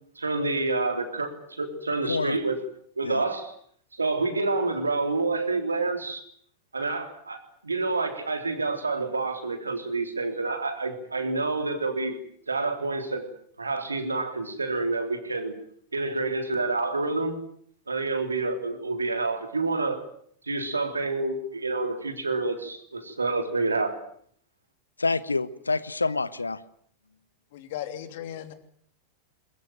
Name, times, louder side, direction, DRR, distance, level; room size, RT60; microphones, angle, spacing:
voice 1, 0.2-2.6 3.0-3.5 4.0-6.2 6.7-12.2 12.5-13.2 13.6-15.5 15.9-17.4 17.9-20.0 20.5-24.0, right 3 dB, 80° right, 7 dB, 3.6 m, -28 dB
voice 2, 25.0-26.6, left 3 dB, 80° left, 18 dB, 1.0 m, -27 dB
voice 3, 27.5-28.5, left 11 dB, 50° left, 9 dB, 2.9 m, -36 dB
22.0 x 22.0 x 9.0 m, 0.63 s
figure-of-eight pair, 90°, 0 cm